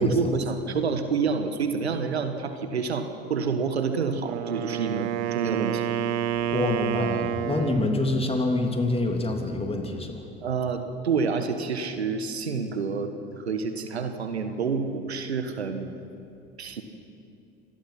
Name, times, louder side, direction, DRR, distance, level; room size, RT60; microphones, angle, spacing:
voice 1, 0.0-5.9 10.4-15.9 16.6-16.8, right 5 dB, 85° right, 8 dB, 1.5 m, -28 dB
Wind instrument woodwind instrument, 4.1-8.0, right 10 dB, 60° right, 1.4 m, -29 dB
voice 2, 6.5-10.2, left 2 dB, 20° left, 3 dB, 3.3 m, -26 dB
26.0 x 19.0 x 5.9 m, 2.6 s
hypercardioid pair, 70°, 31 cm